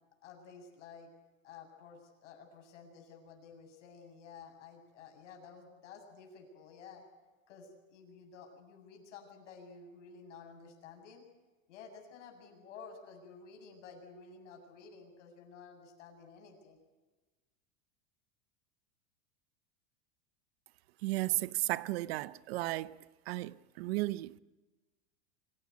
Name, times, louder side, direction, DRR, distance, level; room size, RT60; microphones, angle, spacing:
voice 1, 0.2-1.1 1.4-7.0 7.5-11.2 11.7-16.8, left 5 dB, 80° left, 7.7 m, -53 dB
voice 2, 21.0-23.0 23.3-24.4, right 19 dB, 55° right, 0.8 m, -34 dB
25.5 x 17.0 x 9.4 m
supercardioid pair, 165°, 36 cm